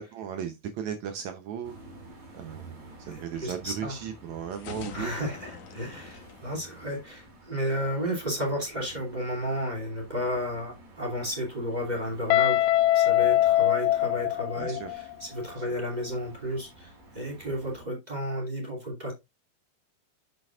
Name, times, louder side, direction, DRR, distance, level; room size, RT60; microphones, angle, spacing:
voice 1, 0.0-1.7 2.3-5.1 14.5-14.9, right 8 dB, 75° right, 1.7 m, -36 dB
sound 1, 1.6-17.8, right 1 dB, 50° right, 3.7 m, -51 dB
voice 2, 3.0-4.0 4.9-12.7 12.9-19.1, equal, 15° right, 2.4 m, -32 dB
sound 2, 4.5-7.4, left 6 dB, 65° left, 1.8 m, -44 dB
Guitar, 12.3-15.1, left 14 dB, 85° left, 2.4 m, -23 dB
7.8 x 7.8 x 2.4 m
omnidirectional pair, 4.2 m